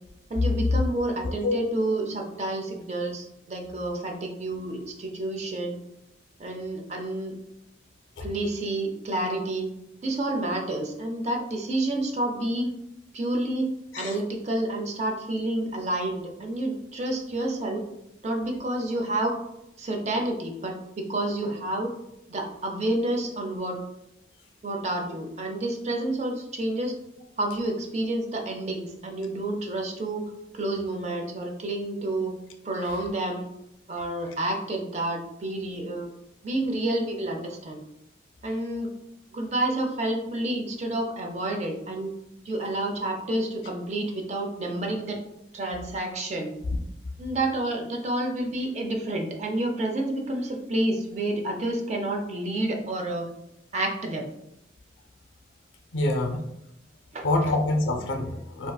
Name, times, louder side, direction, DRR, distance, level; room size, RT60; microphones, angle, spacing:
voice 1, 0.3-5.8 6.4-7.3 8.2-9.7 10.0-12.7 13.1-13.7 14.0-17.8 18.2-19.3 19.8-21.9 22.3-23.8 24.6-26.9 27.4-30.2 30.5-32.3 32.6-33.5 33.9-36.1 36.4-37.8 38.4-38.9 39.3-42.1 42.4-45.2 45.5-46.5 47.2-53.3 53.7-54.3 57.1-57.2, right 1 dB, 35° right, 2 dB, 0.4 m, -29 dB
voice 2, 55.9-56.4 57.2-58.7, left 2 dB, 90° left, 4 dB, 0.4 m, -26 dB
3.6 x 2.4 x 2.2 m, 0.83 s
head